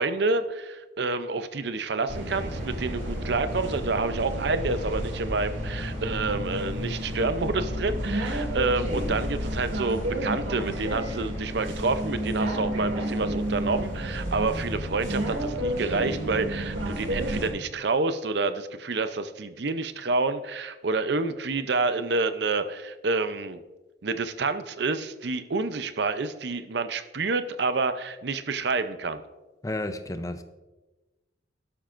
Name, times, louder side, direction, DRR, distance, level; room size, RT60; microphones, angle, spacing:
voice 1, 0.0-23.6 24.0-29.2, right 3 dB, 60° right, 11 dB, 0.6 m, -28 dB
sound 1, 2.1-17.5, equal, 80° right, 2.2 m, -31 dB
voice 2, 29.6-30.4, left 1 dB, 15° left, 9 dB, 0.6 m, -32 dB
12.0 x 12.0 x 2.6 m, 1.1 s
head